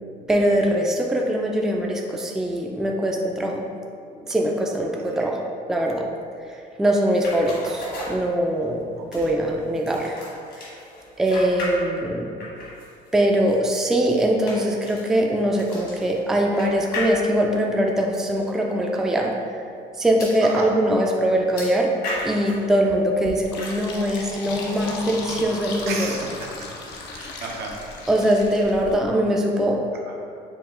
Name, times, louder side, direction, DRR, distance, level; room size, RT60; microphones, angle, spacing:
voice 1, 0.3-3.6 4.2-5.4 5.7-6.0 6.8-8.8 9.1-10.2 10.6-10.7 11.2-12.3 13.1-19.3 20.0-21.9 22.2-26.1 28.1-29.8, right 1 dB, 5° right, 0 dB, 0.3 m, -22 dB
sound 1, 7.1-8.7 9.1-12.1 12.4-17.6 18.4-18.5 18.8-18.9 20.2-20.4 21.6-22.7 23.6-24.0 24.5-25.1, left 1 dB, 70° left, 1.3 m, -36 dB
Fill (with liquid), 23.2-28.9, left 3 dB, 85° left, 0.6 m, -36 dB
voice 2, 25.9-26.5 27.1-27.7 29.9-30.2, right 4 dB, 75° right, -1 dB, 0.7 m, -33 dB
4.7 x 2.3 x 3.7 m, 2.4 s
cardioid pair, 110°, 17 cm